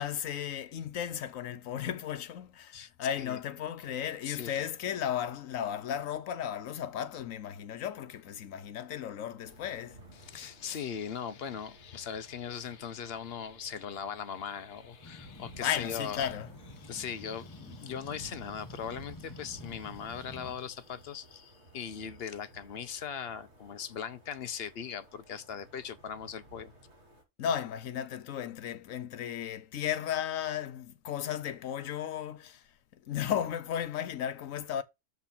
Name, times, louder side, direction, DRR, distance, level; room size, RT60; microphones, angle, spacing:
voice 1, 0.0-10.0 10.3-10.8 15.6-16.5 27.4-32.6 33.1-34.8, left 9 dB, 85° left, 1.2 m, -35 dB
voice 2, 4.2-4.7 10.1-16.3 16.8-26.7, left 7 dB, 55° left, 0.9 m, -39 dB
sound 1, 9.4-27.2, right 2 dB, 60° right, 2.6 m, -55 dB
sound 2, 15.0-20.6, left 3 dB, 20° left, 0.7 m, -50 dB
7.0 x 4.1 x 5.8 m
omnidirectional pair, 1.3 m